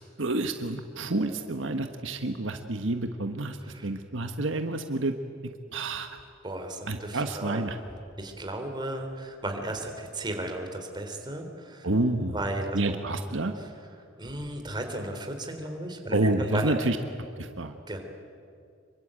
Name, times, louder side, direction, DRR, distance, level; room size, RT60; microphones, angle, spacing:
voice 1, 0.2-3.6 3.8-5.1 5.7-6.2 6.9-7.8 11.8-12.4 12.7-13.5 16.1-17.0 17.4-17.8, right 2 dB, 75° right, 7 dB, 1.4 m, -28 dB
voice 2, 6.4-7.8 8.2-11.9 12.3-13.0 13.6-13.7 14.2-16.7 17.9-18.0, right 1 dB, 25° right, 4 dB, 3.6 m, -35 dB
26.5 x 23.0 x 8.9 m, 2.3 s
head